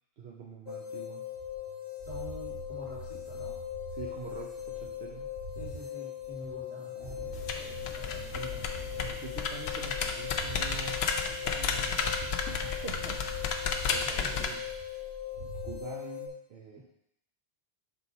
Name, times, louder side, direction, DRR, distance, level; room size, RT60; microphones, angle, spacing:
voice 1, 0.2-1.3 3.9-5.4 6.9-7.6 8.3-8.6 9.0-13.3 13.9-14.6 15.4-16.8, right 5 dB, 85° right, -3 dB, 1.0 m, -45 dB
sound 1, 0.7-16.3, left 11 dB, 60° left, 1.2 m, -40 dB
sound 2, 1.3-5.8 6.2-10.8 11.2-11.7 12.0-15.8, right 3 dB, 60° right, 1.1 m, -46 dB
voice 2, 2.0-3.6 5.6-9.1 14.2-14.5, equal, 10° right, -7 dB, 1.8 m, -47 dB
Hitting a button, 7.3-14.5, left 5 dB, 90° left, 0.8 m, -33 dB
6.2 x 3.7 x 4.1 m, 0.79 s
omnidirectional pair, 1.0 m